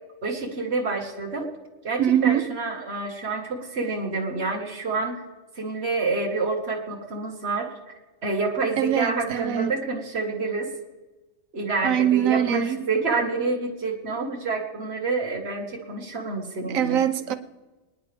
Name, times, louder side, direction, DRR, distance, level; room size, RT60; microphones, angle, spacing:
voice 1, 0.2-1.5 1.8-5.2 5.6-7.7 8.2-10.7 11.5-17.0, right 3 dB, 50° right, 0 dB, 2.1 m, -28 dB
voice 2, 2.0-2.5 8.8-9.7 11.8-12.8 16.7-17.4, right 10 dB, 75° right, 10 dB, 1.3 m, -23 dB
24.5 x 10.0 x 3.5 m, 1.1 s
omnidirectional pair, 1.4 m